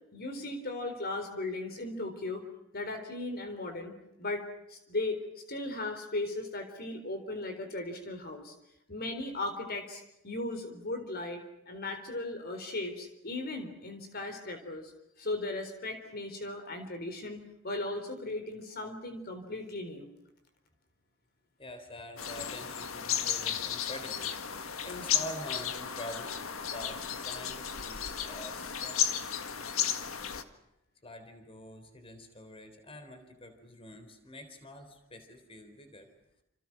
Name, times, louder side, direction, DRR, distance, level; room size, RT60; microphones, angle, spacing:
voice 1, 0.1-2.4 2.7-8.5 8.9-14.9 15.2-20.1, left 2 dB, 50° left, 6 dB, 4.0 m, -37 dB
voice 2, 21.6-30.5 31.0-36.1, left 1 dB, 25° left, 8 dB, 4.0 m, -46 dB
sound 1, 22.2-30.4, left 8 dB, 85° left, 1.8 m, -34 dB
28.5 x 28.5 x 6.1 m, 0.82 s
head